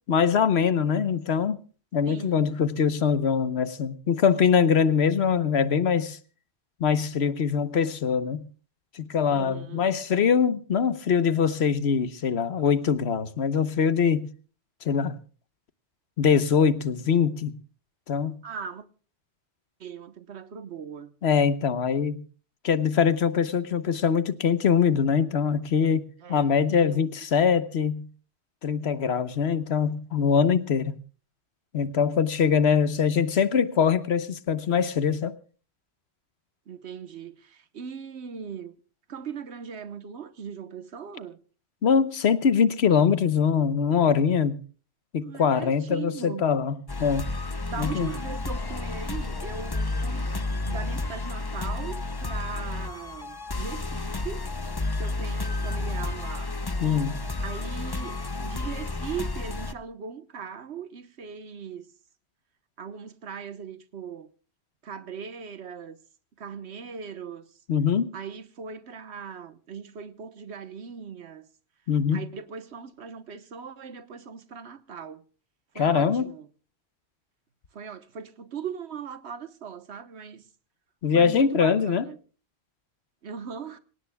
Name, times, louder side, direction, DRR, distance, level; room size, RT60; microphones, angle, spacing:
voice 1, 0.1-1.6 1.9-6.2 6.8-8.5 8.9-14.3 14.8-15.2 16.2-17.6 18.1-18.4 21.2-22.2 22.6-28.1 28.6-31.0 31.7-35.3 41.8-44.6 45.1-47.3 47.8-48.1 56.8-57.2 67.7-68.1 71.9-72.2 75.8-76.2 81.0-82.0, left 7 dB, 75° left, 1.2 m, -23 dB
voice 2, 2.0-2.5 9.3-9.9 18.4-18.8 19.8-21.1 26.2-27.2 36.7-38.7 39.1-41.4 45.2-46.4 47.7-54.5 55.0-56.5 57.4-61.9 62.8-64.3 64.8-66.0 66.4-67.6 68.1-71.5 72.1-75.2 75.7-76.5 77.7-80.5 81.1-82.2 83.2-83.8, right 6 dB, 85° right, 1.4 m, -39 dB
sound 1, 46.9-59.7, left 2 dB, 25° left, 0.7 m, -31 dB
26.5 x 17.5 x 2.2 m
omnidirectional pair, 1.1 m